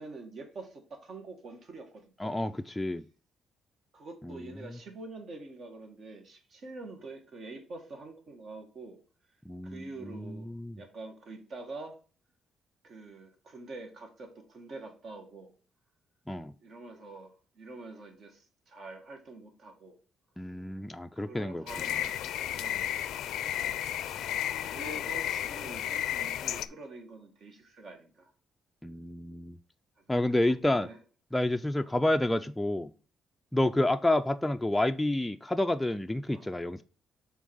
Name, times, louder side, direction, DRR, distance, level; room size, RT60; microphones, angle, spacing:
voice 1, 0.0-2.5 3.9-9.0 9.6-12.0 12.8-15.5 16.6-20.0 21.1-22.2 22.4-23.0 23.4-28.3 30.0-30.1 30.7-31.0 31.8-31.9 36.3-36.5, right 3 dB, 60° right, 1.7 m, -46 dB
voice 2, 2.2-3.0 4.2-4.4 9.5-10.8 16.3-16.5 20.4-21.9 28.8-29.6 30.1-30.9 31.3-32.9 33.5-36.8, left 1 dB, 10° left, 0.4 m, -29 dB
sound 1, 21.7-26.7, left 11 dB, 80° left, 0.4 m, -33 dB
6.1 x 3.9 x 5.5 m
cardioid pair, 90°, 0 cm